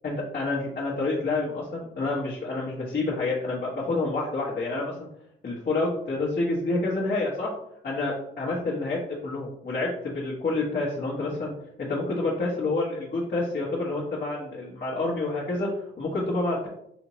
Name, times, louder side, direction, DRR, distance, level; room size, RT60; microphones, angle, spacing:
voice 1, 0.0-5.1 5.4-7.5 7.8-11.5 11.8-16.7, left 2 dB, 45° left, -7 dB, 1.3 m, -28 dB
4.2 x 2.9 x 3.0 m, 0.75 s
cardioid pair, 90°, 20 cm